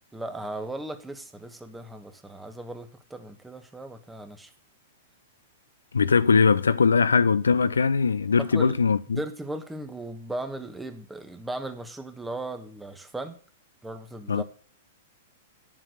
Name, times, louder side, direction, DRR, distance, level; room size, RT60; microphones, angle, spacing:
voice 1, 0.1-4.5 8.4-8.8 9.1-13.4 13.8-14.4, right 1 dB, 5° right, 1.3 m, -37 dB
voice 2, 5.9-9.2 14.3-14.4, left 5 dB, 80° left, 0.5 m, -21 dB
9.1 x 7.5 x 6.5 m
figure-of-eight pair, 105°, 0 cm